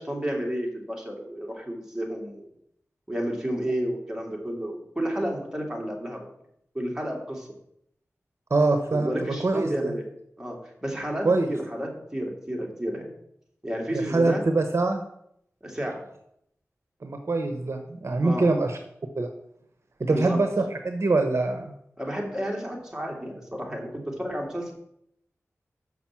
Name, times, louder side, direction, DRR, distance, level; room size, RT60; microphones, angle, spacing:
voice 1, 0.0-2.5 3.1-6.3 6.7-7.5 8.9-10.0 10.4-13.1 13.6-14.4 15.6-16.0 18.2-18.5 20.1-20.4 22.0-24.7, equal, 10° right, 0 dB, 2.6 m, -31 dB
voice 2, 8.5-9.9 11.2-11.5 13.9-15.0 17.0-18.8 19.2-19.3 20.0-21.7, right 3 dB, 60° right, 6 dB, 0.9 m, -24 dB
6.3 x 5.9 x 7.3 m, 0.75 s
wide cardioid pair, 70°, 5 cm